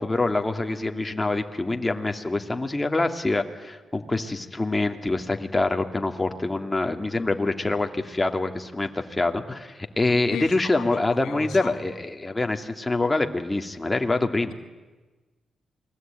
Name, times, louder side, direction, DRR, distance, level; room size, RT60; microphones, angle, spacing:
voice 1, 0.0-14.5, left 2 dB, 20° left, 2.6 m, -25 dB
voice 2, 10.3-11.8, left 7 dB, 80° left, 2.0 m, -36 dB
28.0 x 21.0 x 9.3 m
cardioid pair, 60°, 0 cm